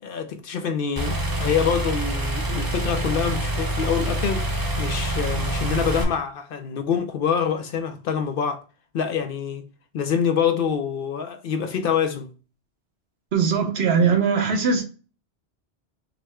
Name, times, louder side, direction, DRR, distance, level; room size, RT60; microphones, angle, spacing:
voice 1, 0.0-8.6 8.9-9.7 9.9-12.3, left 7 dB, 65° left, 0.7 m, -26 dB
sound 1, 1.0-6.0, right 1 dB, 20° right, 0.8 m, -26 dB
voice 2, 13.3-14.8, right 5 dB, 75° right, 1.1 m, -20 dB
5.9 x 2.1 x 3.5 m
omnidirectional pair, 1.1 m